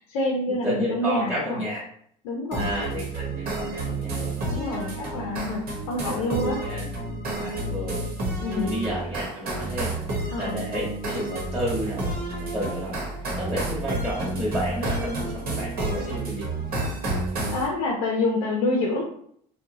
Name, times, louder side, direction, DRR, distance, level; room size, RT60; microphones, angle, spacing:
voice 1, 0.0-1.6 2.2-2.7 4.4-6.6 8.4-8.8 10.3-10.5 17.5-19.0, left 2 dB, 90° left, -2 dB, 0.6 m, -27 dB
voice 2, 0.6-1.8 2.5-4.3 6.0-6.9 7.3-8.0 8.6-12.2 12.5-13.0 13.4-16.5, equal, 15° right, -7 dB, 1.0 m, -31 dB
sound 1, 2.5-17.7, right 2 dB, 60° right, 1.0 m, -30 dB
2.7 x 2.2 x 2.6 m, 0.65 s
supercardioid pair, 85°, 18 cm